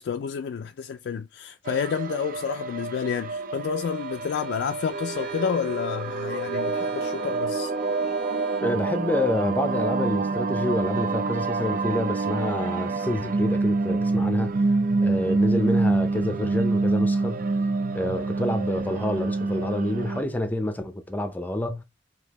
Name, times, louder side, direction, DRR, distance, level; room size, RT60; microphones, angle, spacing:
voice 1, 0.0-7.7, left 7 dB, 70° left, 0.3 m, -30 dB
sound 1, 1.7-20.2, right 3 dB, 50° right, 0.5 m, -27 dB
Bowed string instrument, 3.8-8.7, right 3 dB, 75° right, 1.3 m, -47 dB
voice 2, 8.6-14.6 15.0-17.4 17.9-21.8, left 1 dB, 10° left, 0.5 m, -28 dB
5.2 x 2.9 x 2.9 m
head